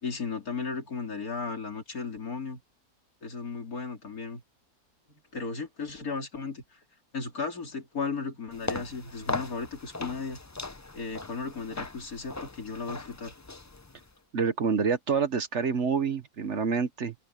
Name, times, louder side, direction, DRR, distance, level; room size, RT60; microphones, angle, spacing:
voice 1, 0.0-2.6 3.2-4.4 5.1-6.8 7.1-10.4 10.9-13.3, left 4 dB, 70° left, 3.6 m, -35 dB
sound 1, 8.5-14.1, left 3 dB, 25° left, 0.3 m, -38 dB
voice 2, 14.3-17.1, right 5 dB, 55° right, 1.3 m, -27 dB
omnidirectional pair, 1.6 m